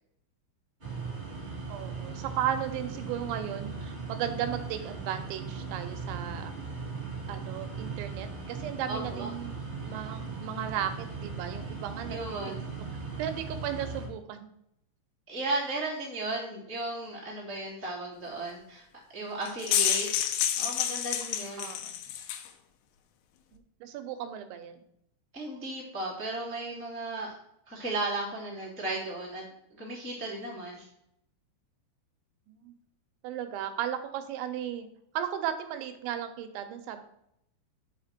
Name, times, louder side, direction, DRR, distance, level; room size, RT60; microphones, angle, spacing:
sound 1, 0.8-14.1, right 4 dB, 55° right, 0.5 m, -38 dB
voice 1, 1.7-6.5 7.3-9.6 9.8-12.2 13.2-14.5 21.6-22.0 23.5-24.8 32.5-32.7 33.2-34.9 35.1-37.0, right 10 dB, 80° right, 8 dB, 2.9 m, -35 dB
voice 2, 8.9-9.3 12.1-12.6 15.3-18.9 19.1-20.1 20.6-21.7 25.3-27.3 27.7-29.4 29.7-30.8, right 2 dB, 20° left, -6 dB, 0.3 m, -35 dB
sound 2, 19.4-22.5, left 10 dB, 80° left, 2.4 m, -29 dB
5.7 x 5.3 x 6.5 m, 0.76 s
omnidirectional pair, 5.4 m